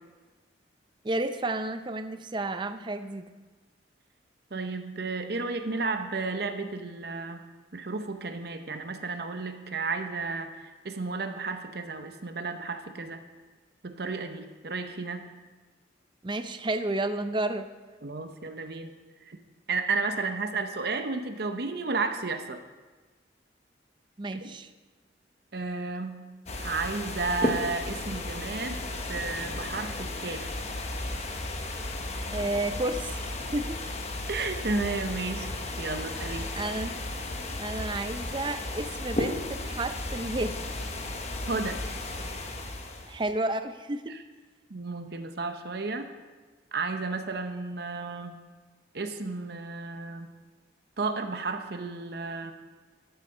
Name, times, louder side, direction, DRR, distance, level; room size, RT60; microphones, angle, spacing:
voice 1, 1.0-3.3 16.2-17.7 24.2-24.7 32.3-33.8 36.5-36.9 37.6-40.6 43.1-44.1, right 2 dB, 25° right, 10 dB, 0.5 m, -31 dB
voice 2, 4.5-7.4 7.7-13.2 13.8-15.3 18.0-18.9 19.3-19.4 19.7-22.6 24.3-24.5 25.5-26.3 26.5-30.5 34.3-35.5 35.8-36.5 41.4-41.8 44.7-46.1 46.7-48.4 48.9-50.3 51.0-52.5, right 3 dB, 55° right, 7 dB, 0.8 m, -33 dB
sound 1, 26.5-43.3, left 2 dB, 35° left, 1.1 m, -34 dB
12.5 x 8.3 x 5.4 m, 1.3 s
head